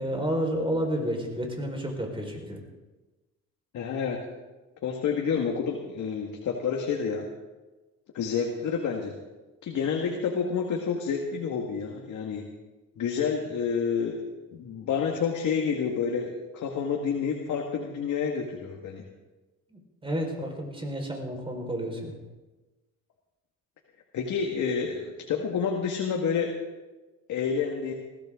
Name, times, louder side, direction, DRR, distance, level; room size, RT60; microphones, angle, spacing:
voice 1, 0.0-2.6 19.7-22.2, equal, 15° right, 2 dB, 4.9 m, -31 dB
voice 2, 3.7-4.2 4.8-7.2 8.1-9.1 9.6-12.4 13.0-14.2 14.5-19.0 24.1-26.5 27.3-27.9, left 6 dB, 75° left, 1 dB, 2.0 m, -29 dB
20.5 x 15.5 x 3.8 m, 1.2 s
cardioid pair, 90°, 30 cm